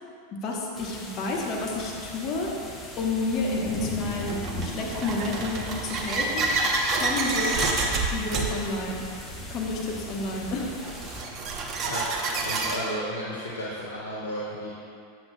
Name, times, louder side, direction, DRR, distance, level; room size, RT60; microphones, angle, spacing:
voice 1, 0.3-2.5 3.0-6.5 6.9-7.7 8.1-9.0 9.5-10.7, left 2 dB, 40° left, -2 dB, 1.0 m, -30 dB
sound 1, 0.7-11.2, left 1 dB, 20° left, 1.0 m, -39 dB
sound 2, 2.4-2.5 3.3-12.8, right 3 dB, 35° right, 0.8 m, -29 dB
voice 2, 12.4-14.7, equal, 80° left, -7 dB, 0.9 m, -33 dB
7.9 x 7.5 x 2.2 m, 2.5 s
figure-of-eight pair, 85°, 0 cm